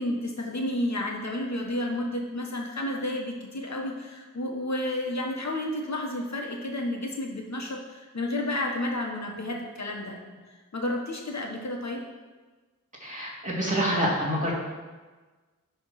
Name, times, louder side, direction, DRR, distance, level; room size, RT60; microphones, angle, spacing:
voice 1, 0.0-12.0, left 1 dB, 55° left, 0 dB, 1.4 m, -31 dB
voice 2, 13.0-14.5, equal, 20° right, -6 dB, 2.4 m, -27 dB
10.5 x 3.5 x 5.7 m, 1.3 s
wide cardioid pair, 85°, 33 cm